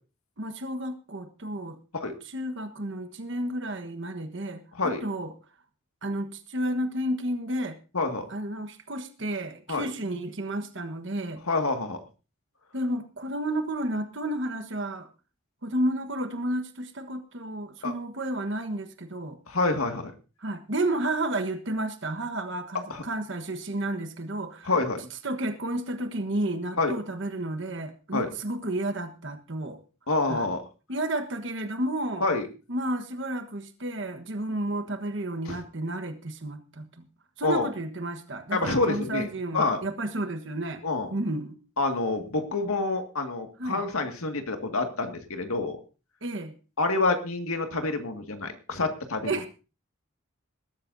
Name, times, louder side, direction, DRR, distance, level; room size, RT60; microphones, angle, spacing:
voice 1, 0.4-1.8 2.2-5.3 6.0-7.8 8.3-11.4 12.7-15.1 15.6-19.4 20.4-24.7 25.2-29.8 30.3-30.5 30.9-32.2 32.7-37.1 37.4-40.8 41.1-41.6 43.6-43.8 46.2-46.5 49.2-49.5, right 1 dB, 60° right, 7 dB, 1.3 m, -31 dB
voice 2, 7.9-8.3 9.7-9.9 11.5-12.0 17.8-17.9 19.5-20.1 22.9-23.0 24.7-25.0 26.8-26.9 28.1-28.3 30.1-30.6 32.2-32.5 35.5-35.6 37.4-37.7 38.5-39.3 39.5-39.8 40.8-41.1 41.8-45.8 46.8-49.3, left 3 dB, 85° left, 6 dB, 2.0 m, -27 dB
20.5 x 13.0 x 2.7 m, 0.33 s
head